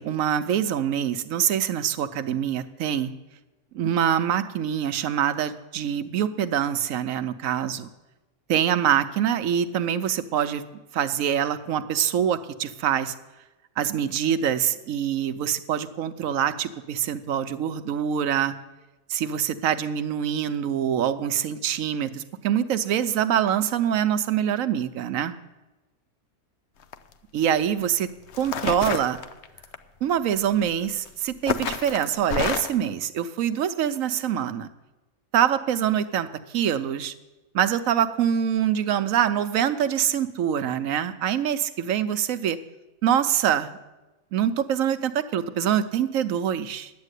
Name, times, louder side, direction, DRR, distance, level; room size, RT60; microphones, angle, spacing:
voice 1, 0.0-3.1 3.7-7.9 8.5-10.6 10.9-13.1 13.8-18.5 19.1-25.3 27.3-28.1 28.4-29.2 30.0-34.7 35.3-37.1 37.5-42.6 43.0-43.8 44.3-46.9, right 9 dB, 70° right, 11 dB, 1.0 m, -25 dB
sound 1, 26.8-27.1 27.9-28.0 28.3-29.8 30.8-31.1 31.5-32.8, left 7 dB, 60° left, 0.8 m, -29 dB
10.5 x 8.7 x 8.2 m, 1.1 s
omnidirectional pair, 1.5 m